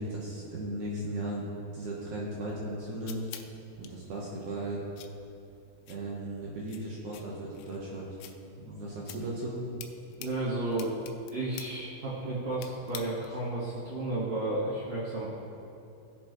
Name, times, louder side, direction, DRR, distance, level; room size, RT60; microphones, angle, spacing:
voice 1, 0.0-3.3 3.8-4.8 5.9-8.2 8.6-9.7, right 1 dB, 75° right, -5 dB, 1.8 m, -36 dB
sound 1, 2.5-13.5, left 10 dB, 90° left, 2.9 m, -50 dB
voice 2, 10.2-10.9 11.3-15.2, right 2 dB, 45° right, -11 dB, 2.6 m, -32 dB
17.0 x 7.0 x 3.1 m, 2.8 s
omnidirectional pair, 5.2 m